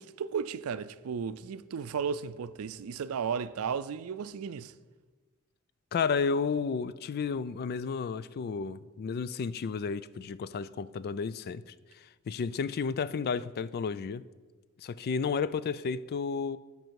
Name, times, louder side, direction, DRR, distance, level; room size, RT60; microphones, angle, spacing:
voice 1, 0.0-4.7, right 6 dB, 90° right, 0.4 m, -34 dB
voice 2, 5.9-11.7 12.3-14.2 14.8-16.6, left 5 dB, 45° left, 0.3 m, -32 dB
12.5 x 5.3 x 4.7 m
head